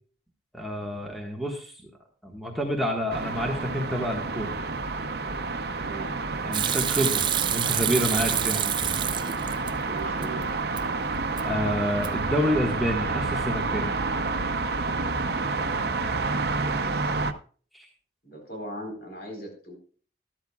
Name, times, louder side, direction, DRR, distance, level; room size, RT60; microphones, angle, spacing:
voice 1, 0.5-1.7 2.2-4.6 6.4-7.2 7.5-9.3 11.4-14.0 17.7-17.9, equal, ahead, -1 dB, 1.6 m, -29 dB
sound 1, 3.1-17.3, right 3 dB, 65° right, 0.7 m, -29 dB
voice 2, 5.8-6.3 8.6-8.8 9.8-10.5 16.6-17.2 18.2-19.7, right 1 dB, 60° left, 2 dB, 4.1 m, -40 dB
Hands / Sink (filling or washing), 6.5-9.7 10.1-10.8 11.2-11.6 11.9-12.4, right 10 dB, 25° right, 0.4 m, -28 dB
13.0 x 13.0 x 2.4 m, 0.42 s
head